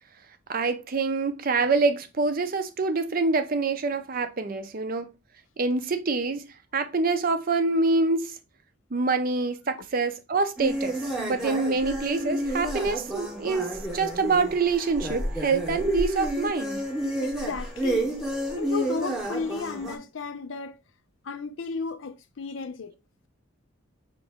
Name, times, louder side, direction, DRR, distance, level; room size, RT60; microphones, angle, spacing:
voice 1, 0.5-5.1 5.6-6.5 6.7-8.3 8.9-16.8, right 4 dB, 40° right, 0.5 m, -26 dB
sound 1, 10.6-20.0, right 1 dB, ahead, 0.9 m, -30 dB
voice 2, 17.2-18.2 18.6-20.8 21.2-22.9, left 4 dB, 60° left, 0.5 m, -34 dB
5.1 x 3.0 x 3.5 m
head